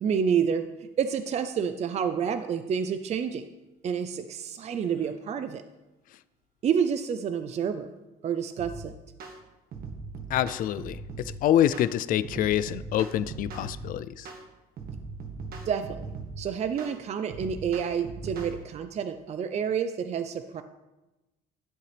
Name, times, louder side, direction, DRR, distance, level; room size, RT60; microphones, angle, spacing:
voice 1, 0.0-3.4 3.8-5.6 6.6-7.9 8.2-8.9 15.6-16.1 16.4-20.6, right 7 dB, 40° right, 9 dB, 0.5 m, -29 dB
sound 1, 8.6-8.8 9.2-9.4 9.7-11.3 11.7-11.9 12.2-13.8 14.2-14.4 14.8-16.4 16.8-16.9 17.3-18.5, right 4 dB, 65° right, 1.5 m, -39 dB
voice 2, 10.3-14.3, left 11 dB, 55° left, 15 dB, 0.4 m, -26 dB
11.5 x 7.7 x 3.3 m, 1.0 s
cardioid pair, 110°, 17 cm